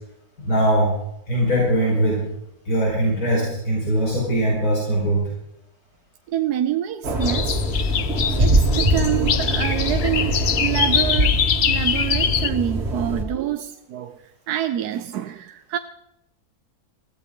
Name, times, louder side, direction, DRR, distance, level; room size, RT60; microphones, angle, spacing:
voice 1, 0.4-0.9 1.3-2.2 2.6-5.2, right 1 dB, 70° left, -4 dB, 5.0 m, -21 dB
voice 2, 6.3-7.8 8.3-11.4 11.7-15.8, right 11 dB, 80° right, 8 dB, 1.2 m, -26 dB
sound 1, 7.0-13.2, right 1 dB, 45° right, 2.5 m, -23 dB
sound 2, 7.2-12.5, left 8 dB, 90° left, 0.4 m, -23 dB
20.0 x 15.0 x 3.7 m, 0.79 s
omnidirectional pair, 1.7 m